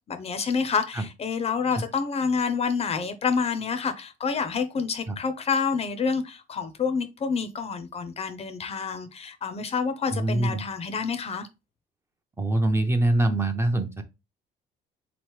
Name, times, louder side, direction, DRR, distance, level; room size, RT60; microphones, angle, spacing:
voice 1, 0.1-11.5, left 5 dB, 35° left, 0.5 m, -28 dB
voice 2, 10.1-10.6 12.4-14.0, right 2 dB, 15° right, 0.6 m, -24 dB
3.8 x 3.0 x 3.2 m
cardioid pair, 110°, 17 cm